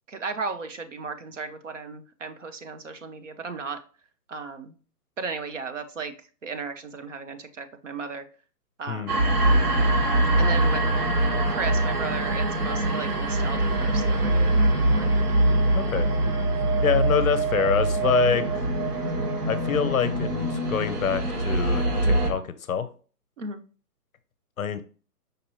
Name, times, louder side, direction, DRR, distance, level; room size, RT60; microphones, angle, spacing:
voice 1, 0.1-3.8 4.3-4.7 5.2-6.1 6.4-8.2 8.8-9.3 10.3-10.8 11.5-15.1 23.4-23.6, right 4 dB, 50° right, 9 dB, 0.6 m, -35 dB
sound 1, 9.1-22.3, right 1 dB, 70° right, 1.3 m, -23 dB
voice 2, 15.7-16.1 16.8-18.7 19.5-22.9 24.6-24.8, left 7 dB, 60° left, 13 dB, 0.6 m, -26 dB
5.2 x 2.8 x 2.9 m, 0.38 s
hypercardioid pair, 170°, 48 cm